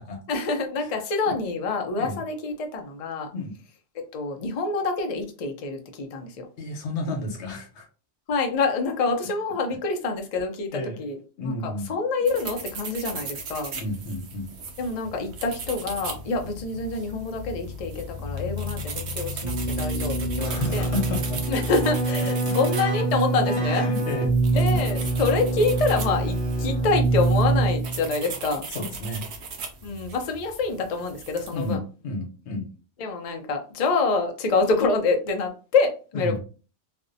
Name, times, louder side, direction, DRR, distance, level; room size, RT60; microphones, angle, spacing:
voice 1, 0.3-3.3 4.1-6.5 8.3-11.2 11.4-13.7 14.8-20.9 21.5-23.8 24.5-28.7 29.8-31.8 33.0-36.4, left 3 dB, 55° left, 3 dB, 0.4 m, -26 dB
voice 2, 6.6-7.9 10.7-11.0 11.4-11.9 13.7-14.5 20.4-21.4 22.2-22.6 23.7-24.3 24.7-24.8 28.7-29.2 31.5-32.7 36.1-36.4, left 2 dB, 80° left, 1 dB, 1.0 m, -32 dB
sound 1, 12.3-31.7, right 2 dB, 75° right, 0.9 m, -37 dB
Keyboard (musical), 19.4-28.1, right 3 dB, 30° right, 0.7 m, -25 dB
2.5 x 2.0 x 2.5 m, 0.35 s
omnidirectional pair, 1.2 m